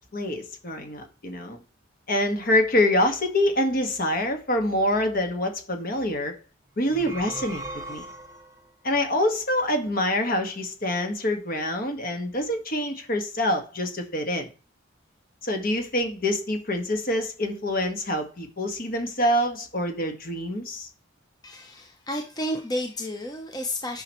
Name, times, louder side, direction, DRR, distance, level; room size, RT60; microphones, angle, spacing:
voice 1, 0.1-1.6 2.1-6.3 6.8-7.6 7.9-8.1 8.8-14.5 15.4-20.9, left 1 dB, 50° left, 1.6 m, -26 dB
sound 1, 6.8-8.7, right 2 dB, 15° right, 1.1 m, -38 dB
voice 2, 21.4-24.0, left 1 dB, 20° left, 0.8 m, -31 dB
9.8 x 5.9 x 3.1 m
head